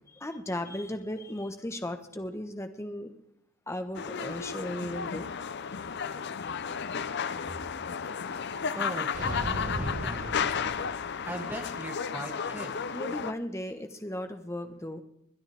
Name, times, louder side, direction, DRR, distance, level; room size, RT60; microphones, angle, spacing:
voice 1, 0.1-3.1 3.7-5.3 12.9-15.0, left 1 dB, 15° left, 7 dB, 1.1 m, -36 dB
sound 1, 3.9-13.3, left 6 dB, 50° left, 0.6 m, -33 dB
voice 2, 8.7-10.7 11.2-12.8, right 1 dB, 10° right, 1 dB, 2.2 m, -39 dB
sound 2, 9.1-11.3, equal, 65° right, 5.4 m, -36 dB
21.5 x 10.5 x 3.4 m, 0.79 s
head